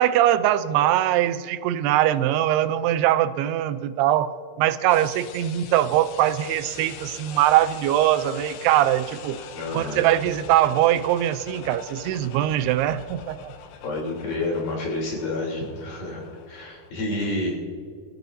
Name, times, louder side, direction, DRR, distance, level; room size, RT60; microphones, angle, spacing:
voice 1, 0.0-9.4 9.7-13.5, right 12 dB, 85° right, 2.6 m, -22 dB
sound 1, 4.9-16.9, left 7 dB, 80° left, 2.8 m, -43 dB
voice 2, 9.5-10.0 13.8-17.6, left 2 dB, 65° left, 5.1 m, -29 dB
27.0 x 14.0 x 2.7 m
omnidirectional pair, 4.6 m